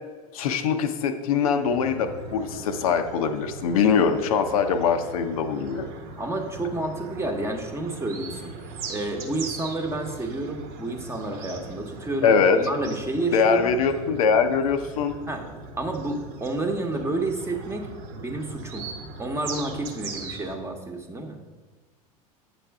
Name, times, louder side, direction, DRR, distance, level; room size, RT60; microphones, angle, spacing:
voice 1, 0.3-5.9 12.2-12.6 13.3-15.1, left 6 dB, 65° left, 7 dB, 0.6 m, -22 dB
sound 1, 1.6-20.6, right 4 dB, 50° right, 1.0 m, -40 dB
voice 2, 6.2-8.5 8.9-13.7 15.3-15.4 15.8-18.9 19.2-21.4, right 2 dB, 15° right, 4 dB, 1.0 m, -30 dB
8.5 x 6.0 x 3.5 m, 1.4 s
figure-of-eight pair, 75°, 19 cm